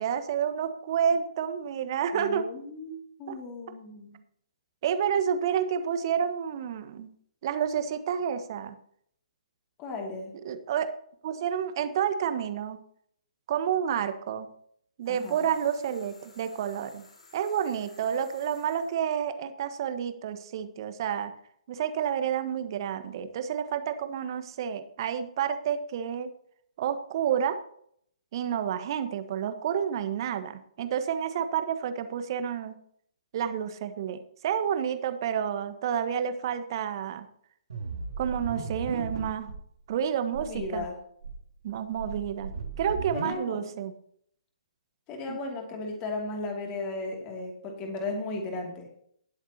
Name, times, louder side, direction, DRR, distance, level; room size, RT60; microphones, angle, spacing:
voice 1, 0.0-2.5 3.3-3.4 4.8-7.1 7.4-8.8 10.4-10.9 11.2-12.8 13.5-14.5 15.0-17.0 17.3-21.3 21.7-26.3 26.8-27.6 28.3-32.8 33.3-37.2 38.2-39.5 39.9-40.8 41.6-43.9 45.3-45.4, right 8 dB, 40° right, 9 dB, 1.3 m, -29 dB
voice 2, 2.1-4.2 9.8-10.3 15.1-15.5 40.4-41.0 43.1-43.8 45.1-48.9, left 2 dB, 25° left, 1 dB, 2.7 m, -36 dB
sound 1, 15.0-19.0, left 3 dB, 60° left, 5.0 m, -56 dB
sound 2, 37.7-39.6 39.9-40.0 40.3-40.8 41.2-43.3, right 4 dB, 60° right, 2.4 m, -36 dB
19.5 x 7.4 x 2.9 m, 0.66 s
figure-of-eight pair, 130°, 4 cm